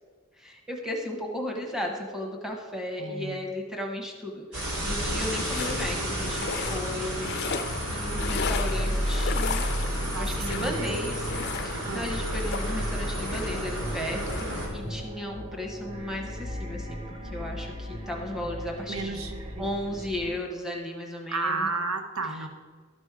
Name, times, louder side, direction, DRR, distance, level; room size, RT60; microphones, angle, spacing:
voice 1, 0.4-7.7 7.9-9.7 9.9-19.2 19.6-21.7, left 1 dB, ahead, 1 dB, 1.1 m, -35 dB
voice 2, 3.0-3.5 10.1-11.0 11.8-12.2 18.9-20.1 21.3-22.5, right 3 dB, 70° right, 6 dB, 0.8 m, -33 dB
sound 1, 4.5-14.7, right 1 dB, 85° right, 2.5 m, -33 dB
sound 2, 5.1-15.1, left 5 dB, 45° left, 0.5 m, -36 dB
sound 3, 5.6-20.4, equal, 25° right, 0.9 m, -34 dB
12.0 x 5.3 x 4.7 m, 1.5 s
head